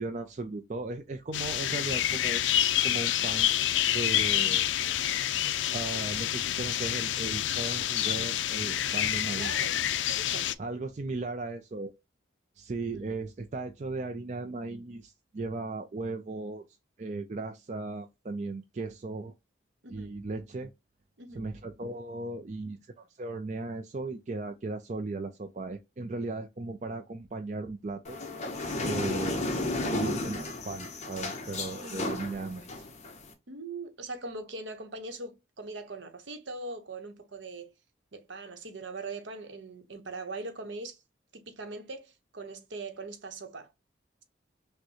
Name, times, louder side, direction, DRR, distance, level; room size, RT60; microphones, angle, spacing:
voice 1, 0.0-2.4 2.8-3.6 3.9-4.7 5.7-9.5 10.6-11.9 12.6-16.6 17.0-19.3 19.9-20.7 21.3-28.2 28.8-29.4 29.9-32.9, right 3 dB, 35° right, 0.4 m, -37 dB
sound 1, 1.3-10.5, left 12 dB, 70° left, 0.4 m, -28 dB
voice 2, 9.3-9.8 10.1-10.5 12.8-13.1 19.8-20.2 21.2-21.5 31.8-32.3 33.5-37.7 38.1-41.0 41.3-43.7, right 3 dB, 70° right, 0.9 m, -41 dB
sound 2, 28.0-33.3, left 2 dB, 35° left, 0.8 m, -33 dB
6.1 x 2.2 x 2.8 m
head